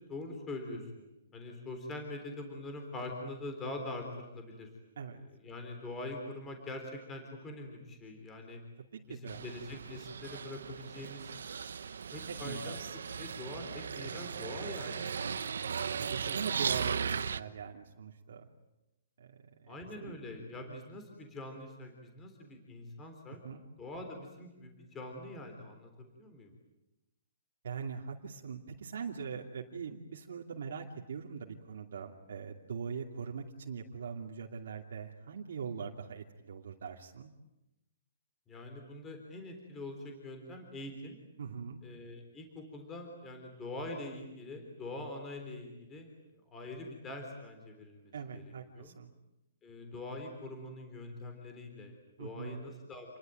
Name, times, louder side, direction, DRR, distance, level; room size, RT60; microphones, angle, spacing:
voice 1, 0.1-1.1 1.3-4.7 5.4-8.6 9.1-11.3 12.1-12.8 13.2-15.1 16.0-16.7 19.7-23.4 23.8-26.5 29.6-29.8 38.5-41.2 41.8-46.1 46.5-48.9 49.6-53.2, left 2 dB, 10° left, 3 dB, 3.6 m, -44 dB
voice 2, 8.9-9.4 12.3-13.0 14.6-14.8 16.0-18.5 19.2-19.7 20.0-20.2 20.6-20.8 23.4-23.6 27.6-37.3 41.4-41.8 48.1-49.1 52.2-52.7, right 6 dB, 65° right, 0 dB, 2.7 m, -42 dB
sound 1, 9.3-17.4, right 6 dB, 80° right, 1.2 m, -37 dB
29.0 x 22.0 x 9.3 m, 0.95 s
hypercardioid pair, 175°, 0 cm